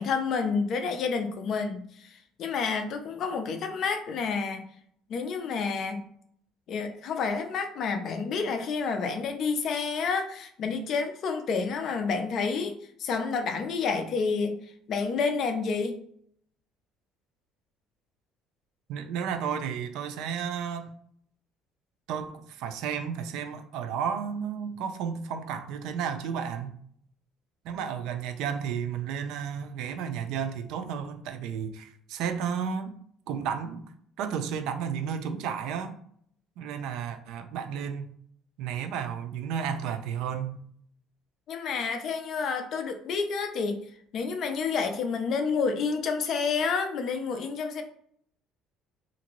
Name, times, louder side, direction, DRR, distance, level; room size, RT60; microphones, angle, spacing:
voice 1, 0.0-4.6 5.1-6.0 6.7-14.6 14.9-16.0 41.5-43.8 44.1-47.8, left 5 dB, 50° left, 6 dB, 0.4 m, -29 dB
voice 2, 18.9-20.9 22.1-26.8 27.6-32.9 33.3-33.8 34.2-35.9 36.6-38.1 38.6-40.6, right 7 dB, 75° right, 8 dB, 0.4 m, -32 dB
2.8 x 2.5 x 2.9 m, 0.66 s
cardioid pair, 140°, 0 cm